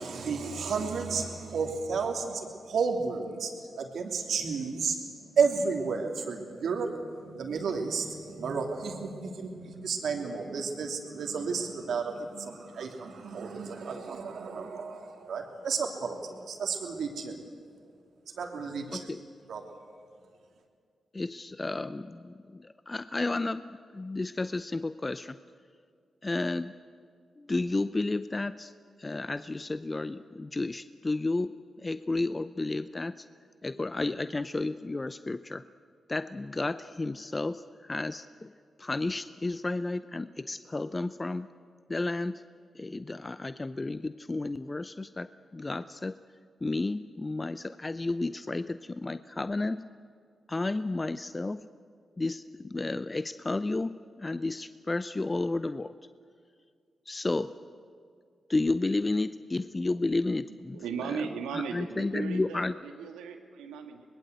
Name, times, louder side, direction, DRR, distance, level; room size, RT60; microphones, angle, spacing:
voice 1, 0.0-3.5 3.8-5.0 5.3-17.4 18.4-19.1 19.5-19.8, right 5 dB, 75° right, 3 dB, 3.0 m, -32 dB
voice 2, 21.1-25.4 26.2-26.7 27.4-28.7 29.0-33.3 33.6-35.6 36.1-38.5 38.8-41.5 41.9-42.4 42.7-46.2 46.6-49.9 50.5-51.7 52.2-55.9 57.1-57.5 58.5-60.8 61.1-61.2 61.5-62.7, left 2 dB, 30° left, 13 dB, 0.6 m, -32 dB
voice 3, 60.7-64.0, right 6 dB, 90° right, 6 dB, 1.8 m, -37 dB
24.5 x 20.0 x 8.1 m, 2.2 s
supercardioid pair, 45°, 0 cm